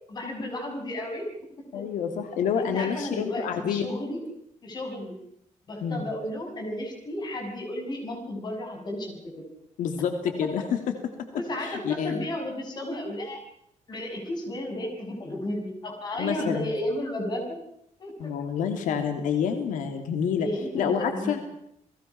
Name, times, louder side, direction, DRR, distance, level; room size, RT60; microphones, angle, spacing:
voice 1, 0.1-1.3 1.7-1.8 2.6-4.2 4.6-5.2 5.7-9.4 10.4-10.6 11.3-13.4 13.9-17.6 18.0-18.3 20.4-21.5, left 1 dB, 35° left, 3 dB, 6.6 m, -33 dB
voice 2, 1.7-3.9 5.8-6.1 9.8-10.6 11.6-12.2 16.2-16.7 18.2-20.5 20.7-21.4, left 7 dB, 90° left, 6 dB, 2.9 m, -28 dB
30.0 x 20.0 x 6.0 m, 0.76 s
cardioid pair, 160°, 13 cm